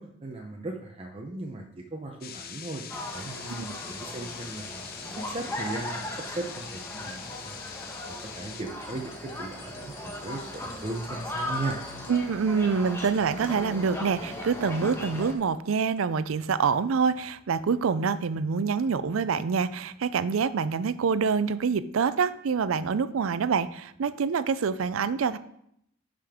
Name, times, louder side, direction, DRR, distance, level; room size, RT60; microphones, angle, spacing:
voice 1, 0.0-2.8 3.1-4.8 5.1-7.7 8.1-11.8, right 2 dB, 30° right, 1 dB, 0.6 m, -37 dB
sound 1, 2.2-8.6, left 8 dB, 50° left, 0.6 m, -43 dB
sound 2, 2.9-15.3, left 1 dB, 15° left, 1.2 m, -38 dB
sound 3, 3.1-12.2, left 3 dB, 70° left, 1.7 m, -49 dB
voice 2, 12.1-25.4, right 5 dB, 85° right, 15 dB, 0.4 m, -26 dB
11.5 x 5.1 x 3.6 m, 0.73 s
head